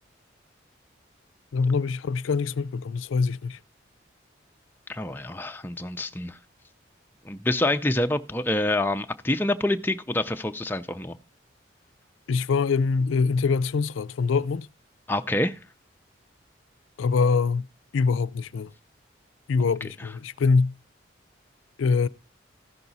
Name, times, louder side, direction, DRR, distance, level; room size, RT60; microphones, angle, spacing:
voice 1, 1.5-3.6 12.3-14.7 17.0-17.7 17.9-18.7 19.5-20.7 21.8-22.1, left 4 dB, 85° left, 0.4 m, -24 dB
voice 2, 4.9-6.4 7.2-11.2 15.1-15.6 20.0-20.1, left 1 dB, 10° left, 0.4 m, -26 dB
14.5 x 5.9 x 4.0 m
head